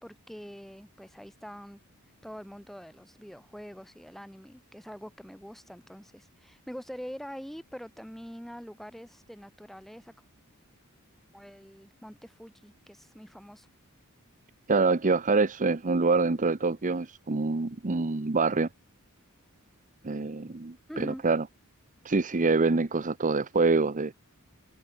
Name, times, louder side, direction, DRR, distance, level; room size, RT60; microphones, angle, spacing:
voice 1, 0.0-1.8 2.2-10.1 11.3-13.7 20.9-21.2, equal, ahead, 3.5 m, -44 dB
voice 2, 14.7-18.7 20.0-21.4 22.0-24.1, right 3 dB, 35° right, 0.8 m, -25 dB
head